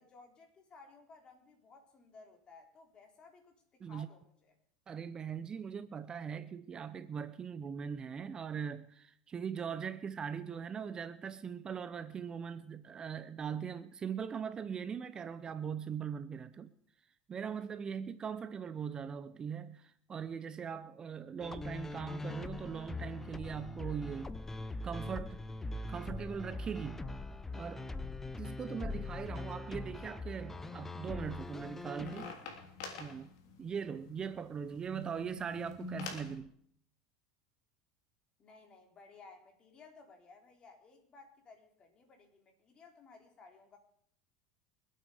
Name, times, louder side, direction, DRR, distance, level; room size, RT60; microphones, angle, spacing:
voice 1, 0.0-4.6 38.4-43.8, left 4 dB, 35° left, 3.9 m, -58 dB
voice 2, 4.9-16.7 17.3-24.3 24.8-25.4 25.9-27.0 27.5-27.8 28.4-32.3 33.0-33.3 33.6-36.5, right 7 dB, 30° right, 0.7 m, -40 dB
sound 1, 21.4-32.3, left 2 dB, 10° left, 0.9 m, -42 dB
sound 2, 31.2-36.3, left 3 dB, 70° left, 3.1 m, -47 dB
24.5 x 8.7 x 5.0 m
supercardioid pair, 105°, 3 cm